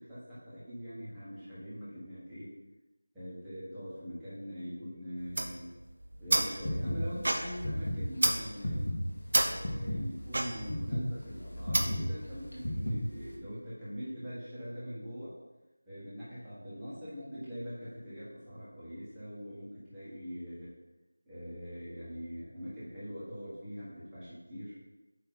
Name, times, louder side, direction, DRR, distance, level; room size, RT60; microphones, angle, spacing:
voice 1, 0.0-2.5 3.1-5.7 6.2-8.9 9.4-15.3 15.8-20.7 21.2-24.7, equal, 5° right, -15 dB, 1.4 m, -43 dB
sound 1, 5.2-12.2, right 1 dB, 50° right, 0.7 m, -32 dB
sound 2, 6.6-13.3, left 1 dB, 55° left, 1.6 m, -35 dB
8.7 x 3.2 x 4.3 m, 1.0 s
figure-of-eight pair, 175°, 0 cm